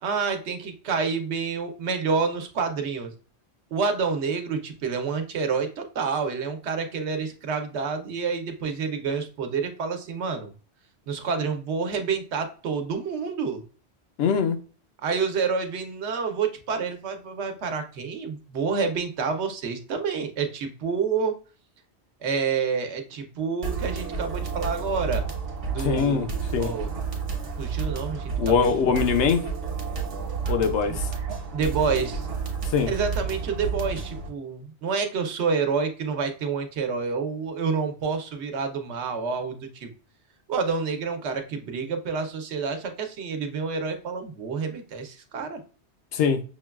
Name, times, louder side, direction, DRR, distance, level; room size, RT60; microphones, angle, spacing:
voice 1, 0.0-3.1 3.7-10.5 11.1-13.6 15.0-21.4 22.2-25.2 25.7-26.3 26.6-26.9 27.6-29.1 30.9-31.0 31.5-32.3 32.9-39.9 40.5-45.6, right 5 dB, 80° right, 1.0 m, -28 dB
voice 2, 14.2-14.6 25.8-26.7 28.4-29.4 30.5-31.1 32.7-32.9 46.1-46.4, left 6 dB, 85° left, 0.9 m, -23 dB
sound 1, 23.6-34.3, right 5 dB, 60° right, 1.1 m, -31 dB
6.0 x 2.2 x 2.3 m
omnidirectional pair, 1.1 m